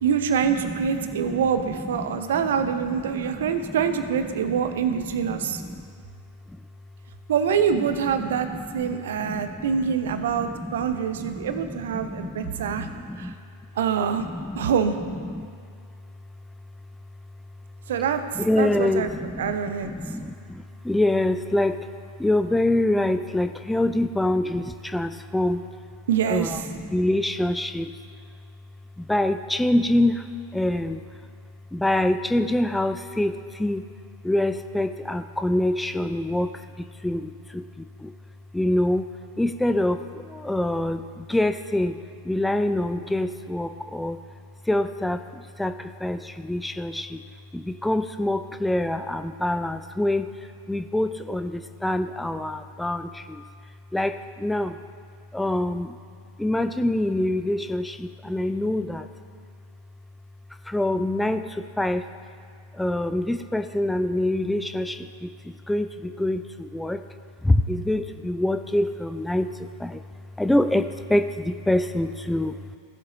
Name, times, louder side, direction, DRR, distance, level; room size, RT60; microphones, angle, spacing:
voice 1, 0.0-5.6 7.3-8.5 8.7-12.9 13.2-13.3 13.8-14.2 14.5-15.0 17.9-19.1 19.4-19.9 26.1-26.7, right 7 dB, 60° right, 9 dB, 0.6 m, -25 dB
voice 2, 0.9-1.4 1.9-2.4 3.1-3.8 4.3-4.6 5.3-5.8 8.7-9.0 9.2-9.7 10.1-10.8 11.2-13.3 14.2-14.7 15.3-15.5 18.4-19.6 19.8-21.8 22.2-25.6 26.3-27.9 29.0-30.2 30.5-31.0 31.7-33.8 34.2-36.5 37.0-38.1 38.5-39.0 39.4-42.0 42.3-44.2 44.7-47.2 47.5-50.3 50.7-53.4 53.9-54.8 55.3-56.0 56.4-59.1 60.7-62.0 62.8-67.0 67.4-69.5 69.8-70.0 70.4-72.6, left 1 dB, 5° left, 8 dB, 0.4 m, -25 dB
16.5 x 7.5 x 3.1 m, 2.2 s
figure-of-eight pair, 90°, 0 cm